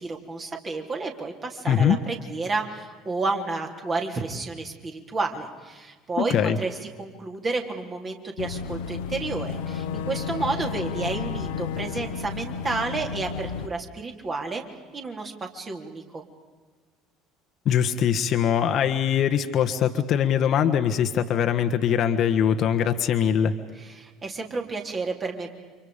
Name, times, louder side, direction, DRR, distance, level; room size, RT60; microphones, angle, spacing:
voice 1, 0.0-14.6 14.9-16.3 24.0-25.5, right 3 dB, 30° right, 2 dB, 3.6 m, -31 dB
voice 2, 1.7-2.0 6.2-6.6 17.6-23.5, left 8 dB, 45° left, 7 dB, 1.5 m, -22 dB
Boat Water vehicle / Engine, 8.4-13.7, left 6 dB, 65° left, 1.2 m, -32 dB
30.0 x 26.5 x 5.2 m, 1.4 s
figure-of-eight pair, 60°, 0 cm